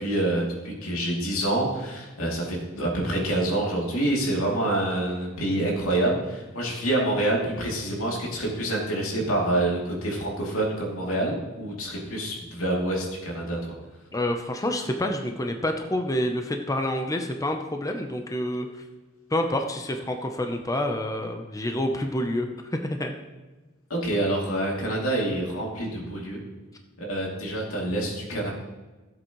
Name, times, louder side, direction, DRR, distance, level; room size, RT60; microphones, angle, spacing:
voice 1, 0.0-13.7 23.9-26.4 27.0-28.5, right 1 dB, 90° left, -2 dB, 2.8 m, -27 dB
voice 2, 14.1-18.8 19.3-23.1, left 1 dB, 15° left, 4 dB, 0.7 m, -28 dB
15.0 x 7.9 x 3.1 m, 1.2 s
head